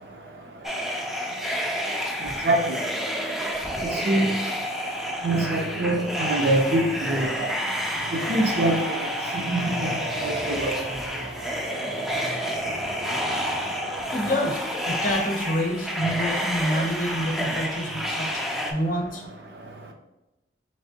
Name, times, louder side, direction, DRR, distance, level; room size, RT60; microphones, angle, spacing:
sound 1, 0.6-18.7, equal, ahead, 0.3 m, -29 dB
voice 1, 3.8-4.3 5.2-6.8 7.1-7.5 8.1-8.7 9.5-9.9 10.2-10.7, right 2 dB, 55° right, 2 dB, 0.6 m, -24 dB
sound 2, 5.1-16.0, right 1 dB, 75° right, 1.4 m, -39 dB
voice 2, 14.1-19.2, equal, 45° left, 1 dB, 0.7 m, -28 dB
4.1 x 3.3 x 2.8 m, 0.98 s
head